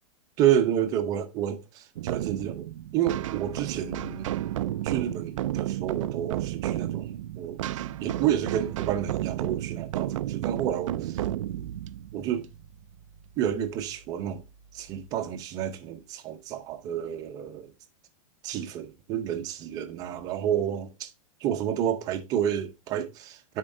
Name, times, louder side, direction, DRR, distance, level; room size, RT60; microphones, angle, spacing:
voice 1, 0.4-2.7 2.9-4.3 4.8-7.6 8.0-11.2 12.1-12.5 13.4-14.4 14.7-17.7 18.4-21.1 21.4-23.6, right 10 dB, 20° right, 0.6 m, -29 dB
sound 1, 2.0-13.4, right 13 dB, 55° right, 0.4 m, -32 dB
10.5 x 4.4 x 2.6 m
supercardioid pair, 175°, 20 cm